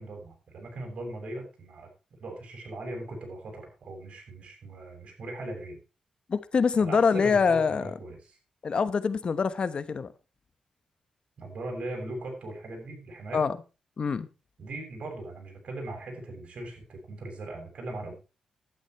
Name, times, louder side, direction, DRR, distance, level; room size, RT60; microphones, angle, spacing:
voice 1, 0.0-1.9 2.2-5.8 6.8-8.4 11.4-13.4 14.6-18.1, right 2 dB, 60° right, 6.6 m, -39 dB
voice 2, 6.3-7.9 8.6-10.1 13.3-13.6 14.0-14.3, left 5 dB, 50° left, 1.0 m, -25 dB
11.5 x 10.0 x 4.6 m
cardioid pair, 90°, 2 cm